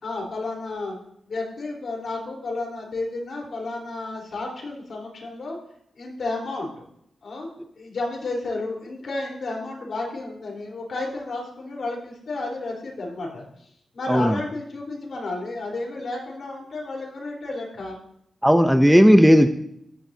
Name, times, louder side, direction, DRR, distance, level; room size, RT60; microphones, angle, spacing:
voice 1, 0.0-1.0 1.3-5.6 6.0-6.9 7.2-7.5 7.8-13.7 13.9-18.0, left 2 dB, 65° left, -1 dB, 4.0 m, -32 dB
voice 2, 14.1-14.4 18.4-19.5, equal, ahead, 8 dB, 0.6 m, -15 dB
14.5 x 11.0 x 2.8 m, 0.72 s
wide cardioid pair, 115°, 0 cm